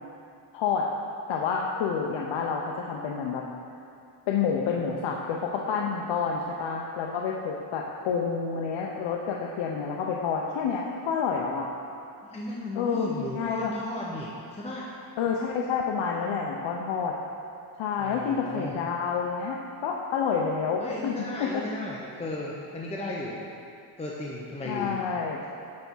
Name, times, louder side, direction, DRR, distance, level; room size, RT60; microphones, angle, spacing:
voice 1, 0.5-0.9 1.3-3.4 4.3-11.7 12.7-13.1 13.3-13.7 15.2-17.1 17.8-21.1 21.4-21.5 24.7-25.5, left 6 dB, 70° left, -1 dB, 0.8 m, -29 dB
voice 2, 12.2-14.9 18.0-18.8 20.8-23.4 24.0-25.0, left 1 dB, 15° left, -4 dB, 0.7 m, -35 dB
9.6 x 3.5 x 6.2 m, 2.5 s
cardioid pair, 120°, 47 cm